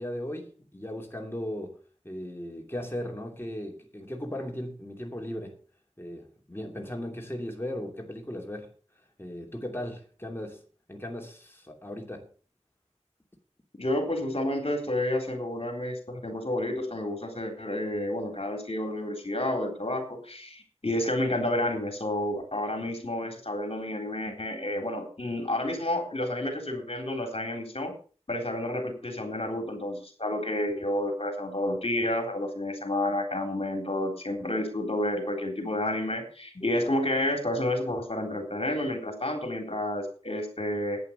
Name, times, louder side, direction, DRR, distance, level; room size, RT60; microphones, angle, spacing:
voice 1, 0.0-1.8 2.0-5.5 6.0-10.6 10.9-12.3, left 1 dB, 20° left, 2.8 m, -37 dB
voice 2, 13.7-27.9 28.3-41.0, left 1 dB, 55° left, 3.7 m, -30 dB
11.0 x 9.6 x 6.4 m
wide cardioid pair, 45°, 12 cm